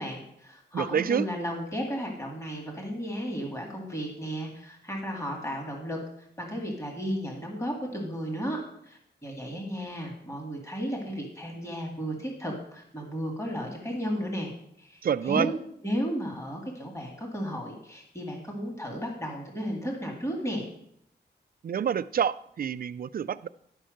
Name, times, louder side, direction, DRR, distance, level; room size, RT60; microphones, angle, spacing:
voice 1, 0.0-14.5 14.8-15.6 15.8-20.7, equal, 15° left, 0 dB, 2.1 m, -34 dB
voice 2, 0.7-1.3 15.0-15.5 21.6-23.5, right 8 dB, 55° right, 15 dB, 0.4 m, -27 dB
11.5 x 5.6 x 6.4 m, 0.71 s
wide cardioid pair, 155°, 18 cm